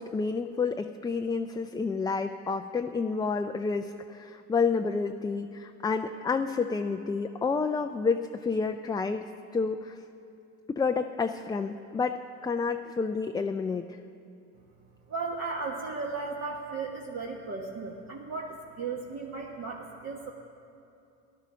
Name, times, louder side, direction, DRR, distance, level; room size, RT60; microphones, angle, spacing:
voice 1, 0.0-9.2 9.5-10.0 10.7-13.9, left 4 dB, 10° left, 6 dB, 0.3 m, -29 dB
voice 2, 15.1-20.3, right 4 dB, 45° right, -1 dB, 1.4 m, -35 dB
15.0 x 11.0 x 6.2 m, 2.6 s
supercardioid pair, 90°, 37 cm